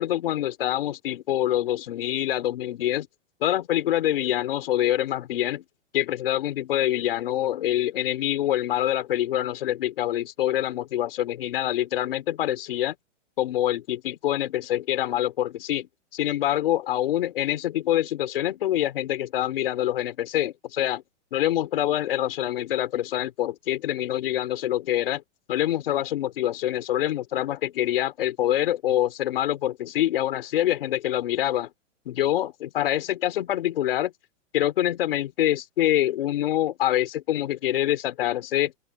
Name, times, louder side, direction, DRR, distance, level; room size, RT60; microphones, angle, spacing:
voice 1, 0.0-3.1 3.4-5.6 5.9-12.9 13.4-21.0 21.3-25.2 25.5-31.7 32.1-34.1 34.5-38.7, left 12 dB, 50° left, 4.3 m, -25 dB
open air
hypercardioid pair, 175°, 37 cm